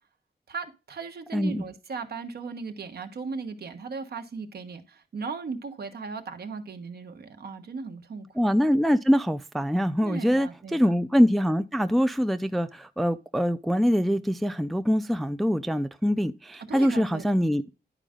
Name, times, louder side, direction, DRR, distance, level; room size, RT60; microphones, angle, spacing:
voice 1, 0.5-8.3 10.0-10.9 16.7-17.4, right 4 dB, 70° right, 1.3 m, -37 dB
voice 2, 1.3-1.6 8.4-17.7, equal, ahead, 0.3 m, -24 dB
10.5 x 5.0 x 3.7 m
wide cardioid pair, 160°, 17 cm